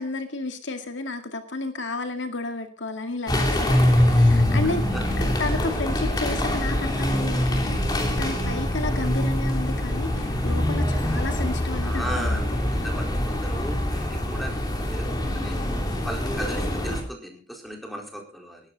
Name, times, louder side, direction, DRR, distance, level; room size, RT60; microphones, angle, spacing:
voice 1, 0.0-4.8 5.2-12.5, left 2 dB, 75° left, 2.1 m, -32 dB
sound 1, 3.3-17.0, left 1 dB, 20° left, 3.1 m, -24 dB
voice 2, 4.6-5.0 11.8-15.6 16.0-18.6, right 1 dB, ahead, 4.3 m, -36 dB
21.0 x 11.5 x 4.1 m
head